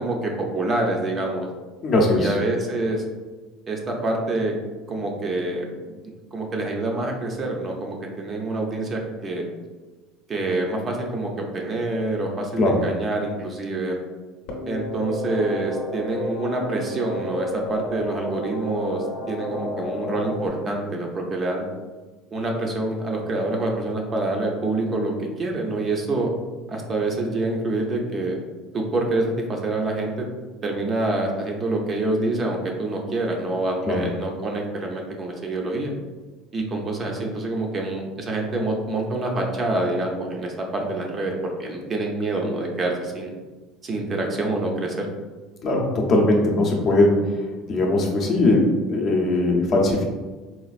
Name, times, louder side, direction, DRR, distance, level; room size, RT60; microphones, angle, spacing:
voice 1, 0.0-1.5 2.2-3.0 3.7-4.5 4.9-5.7 6.3-9.5 10.3-14.0 14.7-21.7 22.3-26.3 26.7-28.4 28.7-30.3 30.6-35.9 36.5-43.3 43.8-45.1, right 2 dB, 25° right, 1 dB, 0.5 m, -26 dB
voice 2, 1.8-2.3 12.6-12.8 33.9-34.0 45.6-47.3 47.7-50.0, left 2 dB, 35° left, 0 dB, 0.6 m, -20 dB
sound 1, 14.5-20.5, left 1 dB, 70° left, 0.7 m, -31 dB
4.1 x 2.4 x 2.4 m, 1.3 s
cardioid pair, 145°, 0 cm